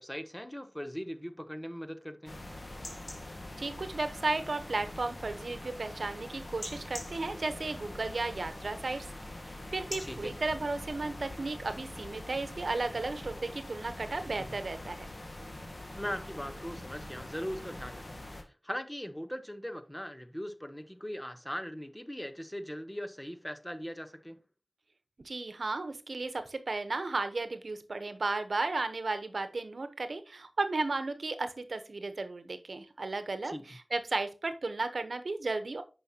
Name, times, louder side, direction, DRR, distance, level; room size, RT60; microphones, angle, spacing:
voice 1, 0.0-2.4 10.0-10.3 15.9-24.4 33.4-33.6, equal, 10° left, 1.0 m, -40 dB
sound 1, 2.3-18.4, left 1 dB, 45° left, 1.7 m, -44 dB
voice 2, 3.6-9.1 9.5-15.1 25.2-35.8, right 3 dB, 85° right, 0.9 m, -34 dB
9.6 x 5.8 x 2.8 m
wide cardioid pair, 40°, 0 cm